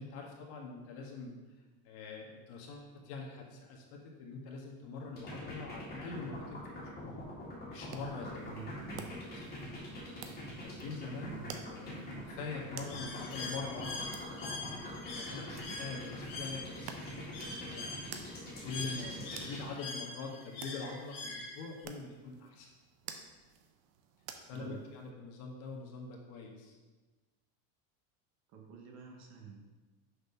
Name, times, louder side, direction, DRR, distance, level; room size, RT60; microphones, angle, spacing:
voice 1, 0.0-1.3 1.8-7.2 7.7-8.5 9.3-9.4 9.7-9.9 10.4-11.3 11.7-14.6 15.1-17.9 18.6-22.7 24.5-26.8, left 4 dB, 70° left, 0 dB, 1.7 m, -44 dB
sound 1, 5.2-19.6, left 1 dB, 20° left, 2.0 m, -44 dB
sound 2, 7.7-25.1, right 7 dB, 60° right, 0.8 m, -53 dB
voice 2, 8.4-9.2 11.2-11.5 24.5-24.8 28.5-29.7, right 6 dB, 40° right, 1 dB, 1.2 m, -49 dB
Bird, 12.9-21.9, left 3 dB, 50° left, 1.6 m, -44 dB
6.5 x 4.4 x 5.5 m, 1.3 s
cardioid pair, 175°, 44 cm